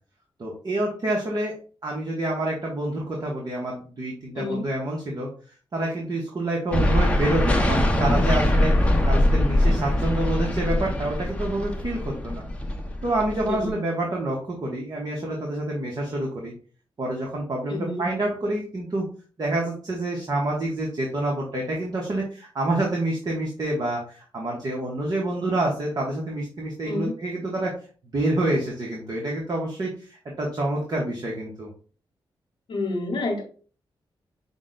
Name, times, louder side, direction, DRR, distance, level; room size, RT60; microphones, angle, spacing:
voice 1, 0.4-1.5 1.8-5.3 5.7-12.4 13.0-16.5 17.0-19.1 19.4-27.7 28.1-31.7, right 1 dB, 45° right, -2 dB, 1.2 m, -27 dB
sound 1, 6.7-13.7, left 1 dB, 15° left, 0.8 m, -22 dB
voice 2, 13.5-13.8 17.7-18.0 26.8-27.1 32.7-33.4, left 2 dB, 70° left, -3 dB, 0.9 m, -28 dB
5.7 x 2.2 x 3.8 m, 0.40 s
wide cardioid pair, 110°, 9 cm